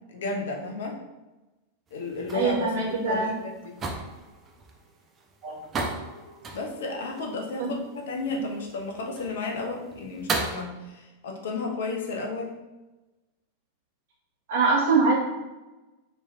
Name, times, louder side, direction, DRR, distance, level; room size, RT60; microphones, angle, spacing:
voice 1, 0.1-1.0 1.9-3.8 6.5-12.5, left 3 dB, 60° left, 1 dB, 0.5 m, -33 dB
sound 1, 1.9-10.6, right 3 dB, 25° right, 0.3 m, -36 dB
voice 2, 2.3-3.3 5.4-5.6 7.6-7.7 8.3-8.4 14.5-15.1, right 4 dB, 50° right, -4 dB, 0.9 m, -23 dB
2.9 x 2.8 x 2.2 m, 1.1 s
figure-of-eight pair, 90°, 0 cm